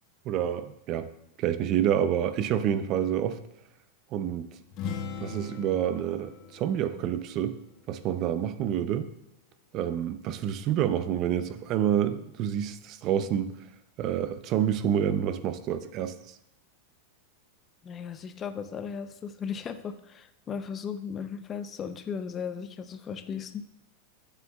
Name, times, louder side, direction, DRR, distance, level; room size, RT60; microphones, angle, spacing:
voice 1, 0.3-1.1 1.4-3.4 4.1-4.5 5.2-7.6 7.9-9.1 9.7-13.5 14.0-16.4, right 10 dB, 40° right, 11 dB, 0.5 m, -28 dB
sound 1, 4.7-8.4, left 6 dB, 45° left, 1.5 m, -40 dB
voice 2, 17.8-23.6, left 7 dB, 25° left, 9 dB, 0.6 m, -36 dB
13.0 x 8.2 x 2.4 m, 0.81 s
supercardioid pair, 145°, 0 cm